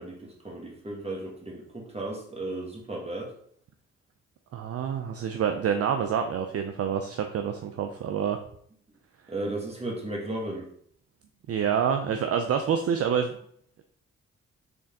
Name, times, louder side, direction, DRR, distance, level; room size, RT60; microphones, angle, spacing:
voice 1, 0.0-3.3 9.3-10.7, right 2 dB, 20° right, -1 dB, 1.6 m, -35 dB
voice 2, 4.5-8.4 11.5-13.4, right 7 dB, 50° right, 6 dB, 0.5 m, -27 dB
3.8 x 3.4 x 3.6 m, 0.63 s
hypercardioid pair, 45°, 31 cm